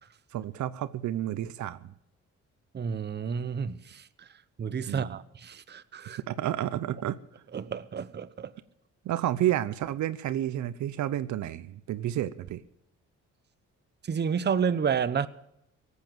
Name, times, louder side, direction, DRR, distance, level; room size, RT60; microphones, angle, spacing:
voice 1, 0.3-1.9 4.9-5.2 6.3-7.4 9.0-12.6, right 12 dB, 70° right, 0.7 m, -31 dB
voice 2, 2.7-4.3 4.6-6.2 7.5-8.5 14.0-15.3, right 6 dB, 35° right, 0.8 m, -30 dB
17.5 x 8.3 x 9.0 m
cardioid pair, 90°, 30 cm